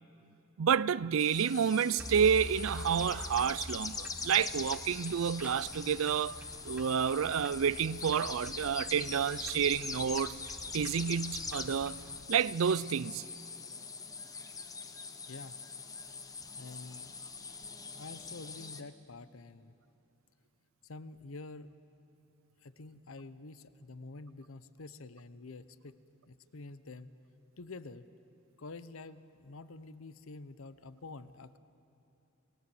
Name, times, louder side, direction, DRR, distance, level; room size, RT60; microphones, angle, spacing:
voice 1, 0.6-10.4 10.7-11.9 12.3-13.2, right 7 dB, 80° right, 0.4 m, -29 dB
sound 1, 1.2-18.8, left 4 dB, 15° left, 0.9 m, -43 dB
sound 2, 2.0-12.2, equal, 5° right, 1.0 m, -47 dB
voice 2, 15.3-15.6 16.6-17.2 17.9-19.7 20.8-21.7 22.6-26.0 26.3-27.1 27.6-28.1 28.6-31.6, left 3 dB, 85° left, 0.8 m, -48 dB
29.5 x 19.5 x 7.8 m
head